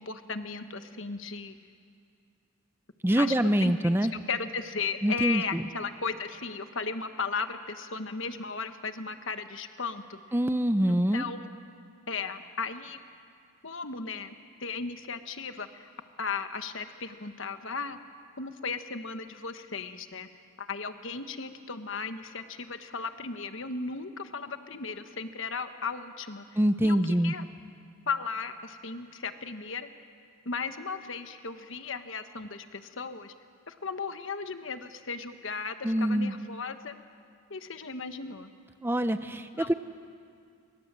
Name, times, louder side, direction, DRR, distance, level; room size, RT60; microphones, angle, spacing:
voice 1, 0.0-1.5 3.2-10.2 10.9-11.5 12.1-13.0 13.6-15.9 16.2-18.0 18.4-20.3 20.6-26.5 26.8-27.4 28.1-29.9 30.4-33.3 33.7-36.9 37.5-38.5 39.5-39.7, left 5 dB, 55° left, 9 dB, 1.2 m, -36 dB
voice 2, 3.0-4.1 5.0-5.6 10.3-11.2 26.6-27.3 35.8-36.3 38.8-39.7, right 1 dB, 10° right, 10 dB, 0.5 m, -25 dB
27.5 x 24.5 x 7.5 m, 2.4 s
head